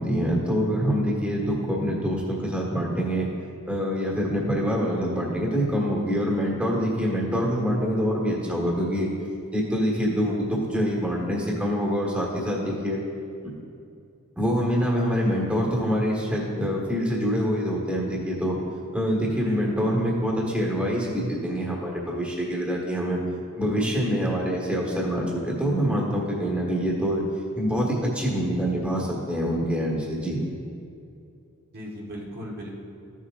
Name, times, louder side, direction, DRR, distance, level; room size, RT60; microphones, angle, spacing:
voice 1, 0.0-3.3 3.7-9.1 9.5-13.0 14.4-18.6 18.9-23.2 23.6-27.2 27.5-30.4, equal, 5° right, -3 dB, 1.5 m, -25 dB
voice 2, 19.4-20.1 31.7-32.7, equal, 50° right, -4 dB, 1.2 m, -37 dB
14.0 x 7.2 x 2.5 m, 2.5 s
head